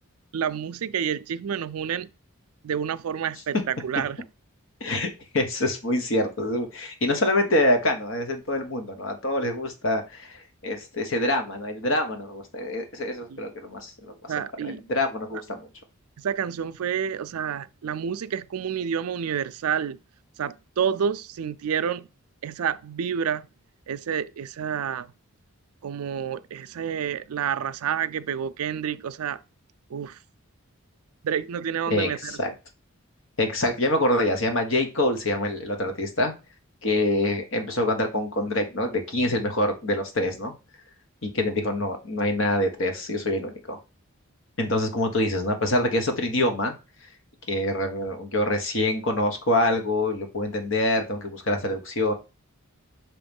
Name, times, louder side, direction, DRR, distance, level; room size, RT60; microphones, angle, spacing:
voice 1, 0.3-2.1 2.6-4.2 13.3-13.5 14.3-14.8 15.3-15.4 16.2-20.0 20.4-22.1 22.4-23.5 23.9-25.1 25.8-29.4 29.9-30.2 31.2-32.4, right 8 dB, 80° right, 0.4 m, -29 dB
voice 2, 5.3-14.1 14.6-15.7 31.9-32.5 33.4-36.3 36.8-40.5 41.2-43.8 44.6-46.7 47.5-52.1, left 1 dB, 60° left, 1.3 m, -25 dB
5.9 x 3.1 x 5.3 m
head